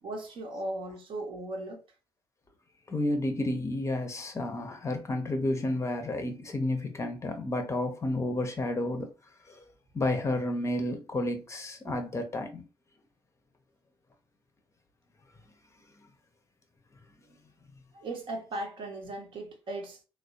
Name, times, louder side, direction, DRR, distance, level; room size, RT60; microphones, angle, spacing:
voice 1, 0.0-1.8 11.9-12.0 17.9-20.0, right 2 dB, 45° right, 0.7 m, -37 dB
voice 2, 2.9-9.1 9.4-9.6 9.9-12.7, left 1 dB, 25° left, 0.6 m, -31 dB
3.2 x 2.1 x 2.6 m
figure-of-eight pair, 45°, 12 cm